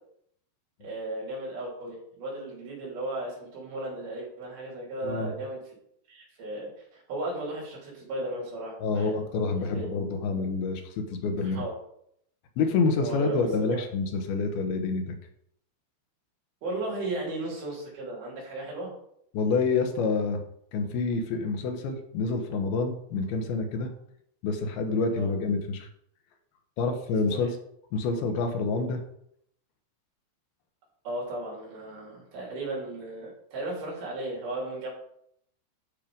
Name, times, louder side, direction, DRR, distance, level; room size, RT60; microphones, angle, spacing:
voice 1, 0.8-5.6 6.1-9.2 9.6-9.9 11.4-11.7 13.0-13.8 16.6-18.9 25.1-25.3 27.2-27.5 31.0-34.9, right 2 dB, 55° right, -3 dB, 5.1 m, -35 dB
voice 2, 8.8-11.6 12.6-15.2 19.3-20.4 20.7-23.9 24.4-25.9 26.8-27.6 27.9-29.0, left 4 dB, 70° left, 5 dB, 2.5 m, -27 dB
10.5 x 6.6 x 5.2 m, 0.71 s
omnidirectional pair, 5.6 m